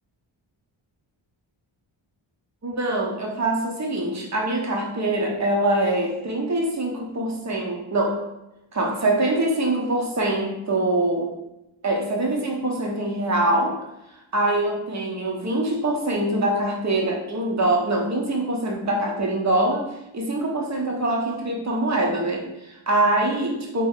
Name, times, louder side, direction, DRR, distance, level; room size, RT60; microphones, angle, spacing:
voice 1, 2.6-8.2 8.7-11.3 11.8-13.8 14.3-23.9, right 1 dB, 35° right, 0 dB, 0.8 m, -24 dB
3.0 x 2.2 x 3.6 m, 0.91 s
cardioid pair, 55°, 50 cm